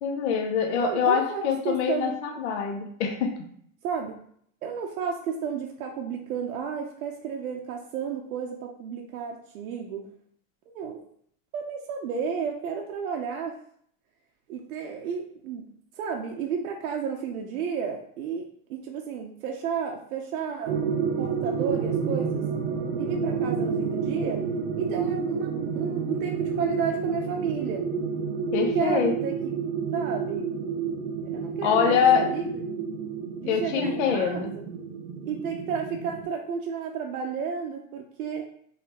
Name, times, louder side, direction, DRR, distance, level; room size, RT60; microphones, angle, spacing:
voice 1, 0.0-3.3 28.5-29.1 31.6-32.3 33.5-34.5, left 7 dB, 55° left, 3 dB, 0.7 m, -24 dB
voice 2, 0.7-2.1 3.8-4.2 4.6-10.0 10.7-11.0 11.5-13.6 14.5-15.6 16.0-20.8 21.1-22.4 23.0-24.5 24.8-27.8 28.6-29.5 29.9-30.5 31.2-32.5 33.4-34.6 35.3-38.5, right 6 dB, 85° right, 1 dB, 0.7 m, -32 dB
sound 1, 20.7-36.2, right 6 dB, 50° right, 0.6 m, -30 dB
4.0 x 3.2 x 2.9 m, 0.63 s
supercardioid pair, 175°, 42 cm